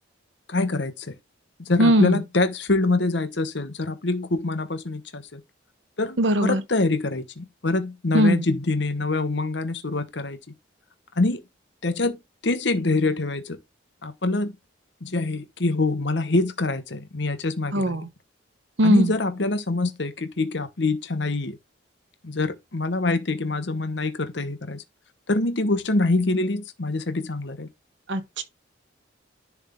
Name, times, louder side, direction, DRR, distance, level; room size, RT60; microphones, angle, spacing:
voice 1, 0.5-1.1 1.7-5.4 6.0-10.4 11.2-11.4 11.8-13.6 14.0-14.5 15.0-18.0 18.8-21.6 22.2-24.8 25.3-27.7, left 2 dB, 60° left, 1.0 m, -25 dB
voice 2, 1.8-2.2 6.2-6.6 8.1-8.4 17.7-18.1 18.8-19.1 28.1-28.4, equal, 65° right, 1.0 m, -20 dB
10.5 x 3.6 x 3.7 m
head